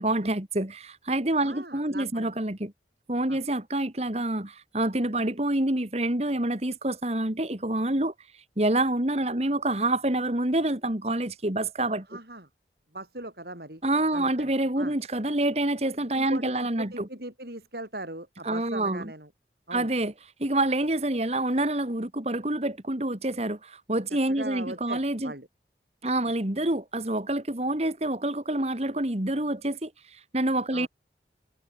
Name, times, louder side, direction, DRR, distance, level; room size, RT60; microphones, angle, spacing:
voice 1, 0.0-2.7 3.1-8.1 8.6-12.1 13.8-17.1 18.4-19.1 19.7-20.1 20.4-25.3 26.0-30.9, right 1 dB, 35° right, 2.1 m, -27 dB
voice 2, 1.4-2.4 3.3-3.4 12.1-12.5 12.9-13.8 14.1-14.9 16.1-19.3 19.7-19.9 24.3-25.5 30.7-30.9, right 2 dB, 60° right, 6.6 m, -40 dB
head